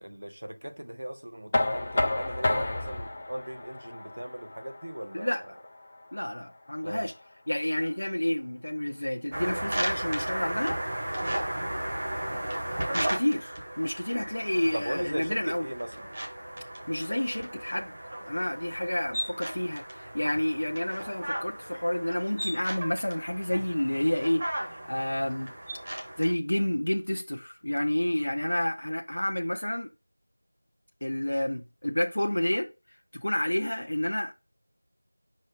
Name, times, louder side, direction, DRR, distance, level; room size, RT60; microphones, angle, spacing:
voice 1, 0.0-5.5 6.8-7.1 12.2-12.5 14.7-16.1, right 1 dB, 50° right, 1.1 m, -38 dB
Knock, 1.5-7.3, left 2 dB, 15° left, 0.6 m, -32 dB
voice 2, 6.1-7.2 7.5-10.8 12.9-15.7 16.9-17.9 18.2-25.5 26.2-29.9 31.0-32.7 33.1-34.3, left 1 dB, 55° left, 0.8 m, -29 dB
sound 1, 9.3-26.3, right 1 dB, 25° right, 1.2 m, -35 dB
5.2 x 5.0 x 3.7 m
figure-of-eight pair, 175°, 0 cm